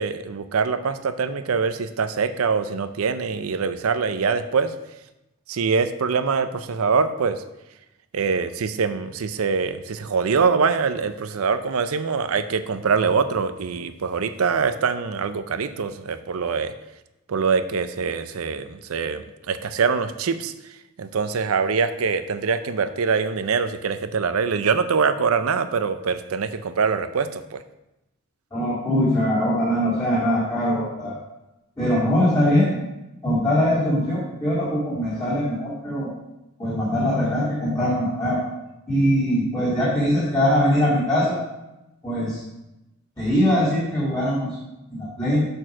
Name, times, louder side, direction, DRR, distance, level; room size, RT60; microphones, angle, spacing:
voice 1, 0.0-4.7 5.5-7.4 8.1-16.7 17.3-20.5 21.0-27.6, right 5 dB, 90° right, 11 dB, 0.5 m, -24 dB
voice 2, 28.5-31.2 31.8-32.7 33.2-36.1 36.6-38.4 38.9-41.4 42.0-42.4 43.2-44.6 44.9-45.5, equal, 20° left, -9 dB, 2.0 m, -22 dB
6.6 x 4.5 x 6.0 m, 0.95 s
head